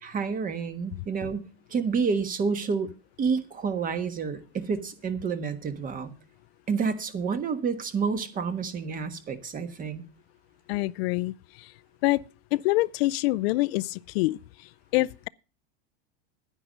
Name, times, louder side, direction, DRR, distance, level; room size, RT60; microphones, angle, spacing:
voice 1, 0.0-2.9 3.2-6.1 6.7-10.0, right 5 dB, 25° right, 1.4 m, -29 dB
voice 2, 10.7-11.3 11.6-11.7 12.0-12.2 12.5-14.4 14.9-15.3, left 19 dB, 70° left, 0.5 m, -25 dB
10.0 x 10.0 x 5.2 m
supercardioid pair, 135°, 32 cm